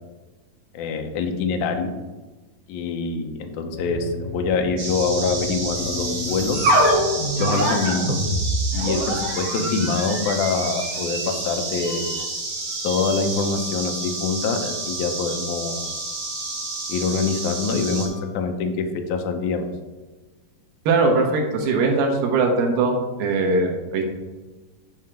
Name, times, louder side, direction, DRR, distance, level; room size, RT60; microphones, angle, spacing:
voice 1, 0.7-1.9 2.7-6.6 7.4-8.2 8.7-12.1 12.8-15.9 16.9-18.8 19.1-19.7, left 4 dB, 75° left, 5 dB, 2.1 m, -25 dB
sound 1, 3.7-8.5, left 1 dB, 45° left, 3.1 m, -35 dB
sound 2, 4.8-18.1, right 3 dB, 45° right, 2.8 m, -30 dB
sound 3, 5.8-18.2, right 1 dB, 65° right, 3.2 m, -28 dB
voice 2, 20.9-24.0, right 3 dB, 85° right, 3 dB, 3.0 m, -20 dB
9.5 x 5.1 x 4.5 m, 1.2 s
omnidirectional pair, 3.9 m